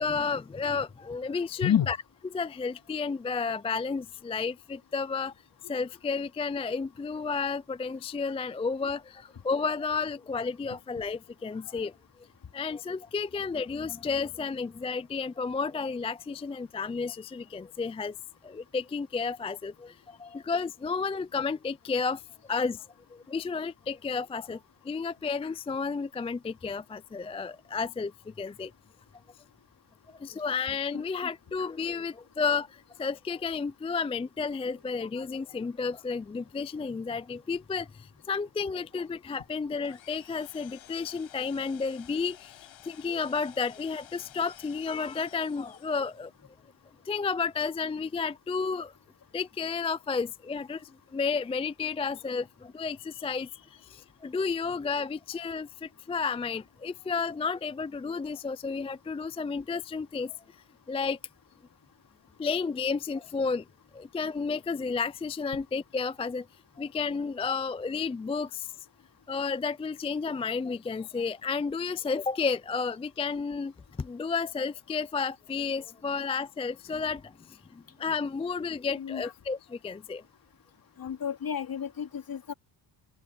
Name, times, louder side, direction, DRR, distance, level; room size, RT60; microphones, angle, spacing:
voice 1, 0.0-2.0 2.3-5.3 5.7-11.9 12.5-18.2 18.4-22.2 22.5-22.9 23.1-28.7 30.1-46.3 47.1-48.9 49.3-60.4 60.9-61.2 62.4-63.6 63.9-66.5 66.8-68.7 69.3-73.7 74.0-80.2, left 5 dB, 15° left, 0.3 m, -32 dB
sound 1, 39.8-46.3, left 12 dB, 80° left, 6.4 m, -53 dB
voice 2, 79.0-79.3 81.0-82.5, left 9 dB, 50° left, 3.0 m, -30 dB
open air
cardioid pair, 105°, 46 cm